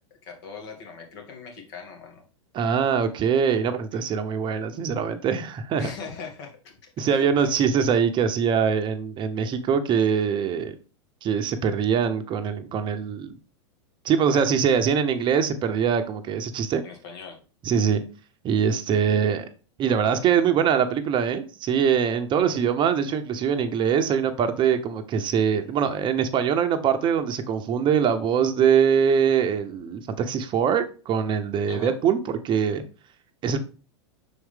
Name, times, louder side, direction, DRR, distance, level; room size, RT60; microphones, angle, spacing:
voice 1, 0.2-2.2 3.9-4.0 5.8-7.5 16.8-17.4 31.7-31.9, left 5 dB, 60° left, 2 dB, 2.6 m, -41 dB
voice 2, 2.5-5.9 7.0-10.7 11.2-13.3 14.0-16.8 17.6-18.0 18.4-19.5 19.8-32.8 33.4-33.6, right 7 dB, 30° right, 9 dB, 0.8 m, -23 dB
6.3 x 4.5 x 3.6 m, 0.36 s
hypercardioid pair, 110°, 15 cm